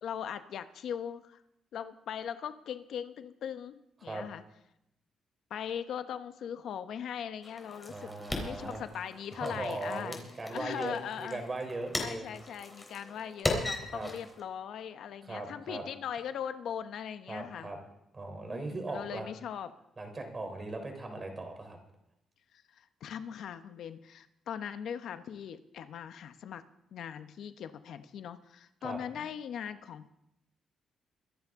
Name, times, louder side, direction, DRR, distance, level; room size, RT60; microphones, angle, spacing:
voice 1, 0.0-1.4 1.7-4.4 5.5-8.1 8.4-10.2 10.5-11.4 12.0-17.7 18.5-19.7 22.7-26.6 26.9-30.1, left 8 dB, 75° left, 10 dB, 0.8 m, -40 dB
sound 1, 7.4-14.4, left 2 dB, 15° left, 3.7 m, -39 dB
voice 2, 7.9-8.8 9.3-12.3 13.9-14.1 15.2-15.8 17.3-17.8 18.1-19.3 20.0-21.8 28.8-29.3, right 2 dB, 30° right, 4 dB, 3.4 m, -39 dB
24.0 x 10.5 x 3.6 m, 0.82 s
cardioid pair, 105°, 0 cm